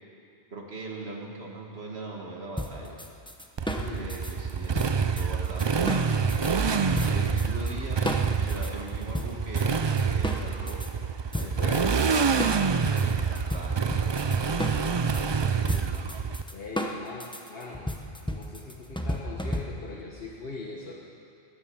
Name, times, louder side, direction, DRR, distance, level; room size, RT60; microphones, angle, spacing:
voice 1, 0.5-3.0 3.7-5.9 6.5-10.8 11.4-12.3 12.6-14.5 15.3-16.0, right 2 dB, 75° right, -1 dB, 2.2 m, -41 dB
sound 1, 2.6-6.5 7.0-7.7 8.1-10.9 11.3-20.0, equal, 5° left, 0.8 m, -34 dB
Motorcycle, 3.6-16.4, right 5 dB, 40° right, 0.4 m, -27 dB
voice 2, 3.7-4.2 11.4-12.0 16.5-18.0 18.3-20.9, left 3 dB, 65° left, -3 dB, 1.5 m, -40 dB
18.0 x 11.0 x 7.1 m, 2.6 s
omnidirectional pair, 1.1 m